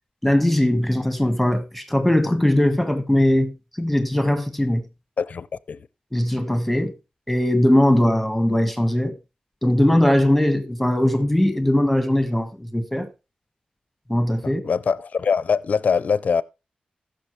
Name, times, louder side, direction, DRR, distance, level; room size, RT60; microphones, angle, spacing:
voice 1, 0.2-3.5 3.8-4.8 6.1-6.9 7.3-9.1 9.6-13.1 14.1-14.6, left 1 dB, 5° left, 1.4 m, -20 dB
voice 2, 5.2-5.9 14.4-16.4, left 6 dB, 65° left, 0.4 m, -23 dB
15.0 x 6.6 x 3.1 m
wide cardioid pair, 80°, 3 cm